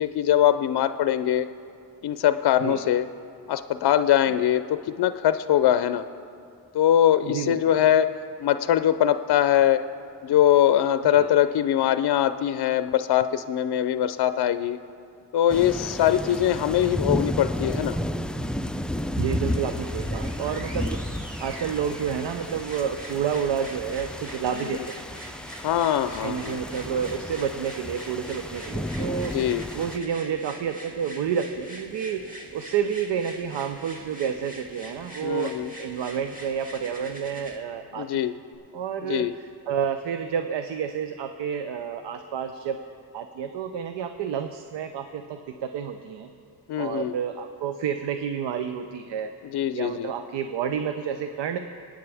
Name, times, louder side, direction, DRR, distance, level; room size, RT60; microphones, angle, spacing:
voice 1, 0.0-1.5 2.0-3.0 3.5-6.0 6.7-8.1 8.4-9.8 10.2-14.8 15.3-18.0 24.7-24.8 25.6-26.6 29.3-29.6 35.2-35.7 38.0-38.3 39.1-39.3 46.7-47.1 49.5-50.1, left 11 dB, 65° left, 11 dB, 0.5 m, -22 dB
voice 2, 7.2-7.6 11.0-11.2 16.0-16.1 19.2-21.0 21.4-25.0 26.2-38.2 38.7-42.8 43.1-46.3 46.8-49.3 49.7-51.6, right 7 dB, 90° right, 8 dB, 0.6 m, -30 dB
sound 1, 15.5-30.0, equal, ahead, 0.3 m, -32 dB
sound 2, 19.3-37.6 38.5-38.6, right 1 dB, 20° right, 2.1 m, -44 dB
24.5 x 9.2 x 3.4 m, 2.5 s
cardioid pair, 75°, 41 cm